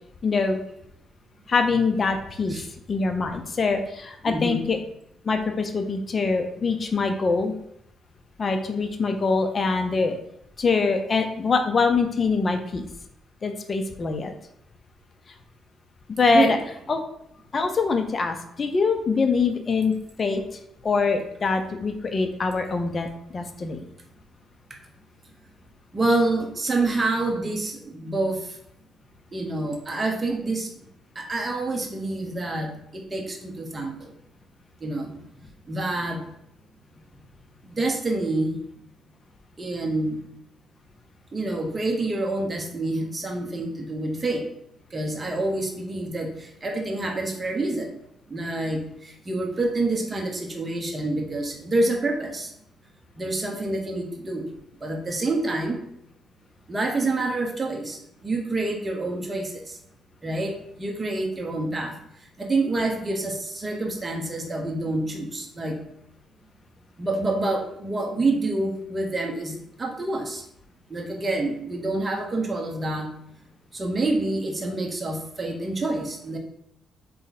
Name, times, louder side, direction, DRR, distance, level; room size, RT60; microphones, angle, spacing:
voice 1, 0.2-0.6 1.5-2.6 2.9-4.8 5.2-7.5 8.4-10.2 10.6-12.8 13.4-14.3 16.2-16.6 16.9-17.0 17.5-20.4 20.8-23.1 23.3-23.9, left 4 dB, 40° left, 6 dB, 0.5 m, -24 dB
voice 2, 4.2-4.7 16.3-16.5 25.9-28.4 29.3-30.7 31.1-34.1 34.8-35.1 35.7-36.2 37.6-38.6 39.6-40.2 41.3-44.4 44.9-47.9 48.3-52.5 53.2-54.5 54.8-55.8 56.7-59.7 60.2-60.5 60.8-61.9 62.4-65.8 67.0-70.4 70.9-73.1 73.7-76.4, right 2 dB, 25° right, 1 dB, 1.0 m, -27 dB
4.1 x 3.1 x 4.0 m, 0.75 s
cardioid pair, 90°, 0 cm